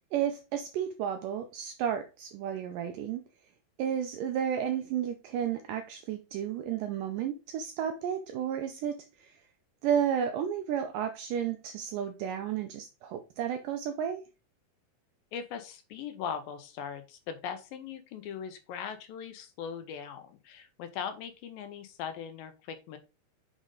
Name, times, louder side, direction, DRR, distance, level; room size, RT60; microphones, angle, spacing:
voice 1, 0.1-3.2 3.8-9.4 9.8-14.2, right 9 dB, 80° right, 1.9 m, -32 dB
voice 2, 15.3-23.0, left 7 dB, 80° left, 2.2 m, -40 dB
6.4 x 5.0 x 3.8 m
omnidirectional pair, 4.4 m